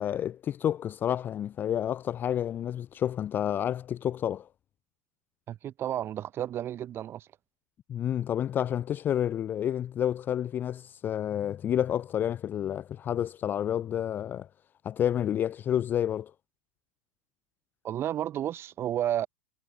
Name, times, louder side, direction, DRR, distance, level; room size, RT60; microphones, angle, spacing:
voice 1, 0.0-4.5 7.9-14.5 14.8-16.3, left 10 dB, 25° left, 0.3 m, -29 dB
voice 2, 5.5-7.3 17.8-19.3, right 11 dB, 30° right, 0.8 m, -32 dB
figure-of-eight pair, 90°, 8 cm